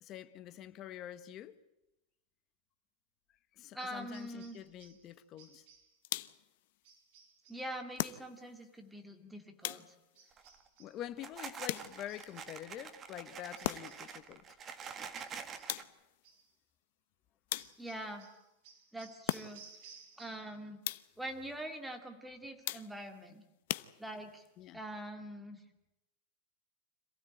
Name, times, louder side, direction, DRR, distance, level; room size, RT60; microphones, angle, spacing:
voice 1, 0.0-1.5 3.6-5.6 10.8-14.4 24.6-24.8, left 11 dB, 30° left, 1.3 m, -46 dB
voice 2, 3.7-4.6 7.5-9.8 17.8-18.2 18.9-19.6 20.2-20.8 21.2-23.4 24.0-24.4 24.7-25.6, right 1 dB, 5° right, 2.4 m, -44 dB
sound 1, 3.8-5.1 5.4-6.0 6.8-7.7 10.1-11.0 11.7-12.7 13.5-14.2 14.8-15.8 16.2-16.5 17.6-20.6 20.9-21.4, right 6 dB, 50° right, 4.8 m, -60 dB
sound 2, 6.0-6.6 8.0-8.6 9.6-10.2 11.7-12.3 13.6-14.1 15.7-16.2 17.5-18.1 19.3-19.8 20.8-21.3 22.6-23.2 23.7-24.4, left 16 dB, 60° left, 0.9 m, -40 dB
sound 3, 10.3-10.7 11.1-15.8, right 6 dB, 20° right, 1.7 m, -46 dB
27.0 x 16.0 x 9.2 m
supercardioid pair, 165°, 0 cm